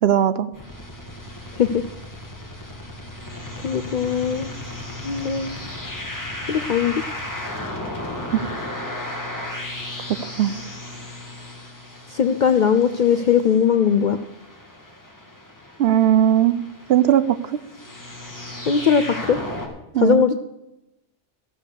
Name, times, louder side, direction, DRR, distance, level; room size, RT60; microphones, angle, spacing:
voice 1, 0.0-0.5 8.3-8.4 10.4-10.5 15.8-16.6 16.9-17.6 19.9-20.2, right 10 dB, 65° right, 13 dB, 0.8 m, -18 dB
sound 1, 0.5-19.7, left 1 dB, 15° left, 1.7 m, -35 dB
voice 2, 3.6-4.5 5.0-5.6 6.5-6.9 12.1-14.2 18.7-19.4 20.0-20.4, left 7 dB, 60° left, 10 dB, 0.5 m, -19 dB
14.5 x 6.4 x 6.8 m, 0.90 s
omnidirectional pair, 1.3 m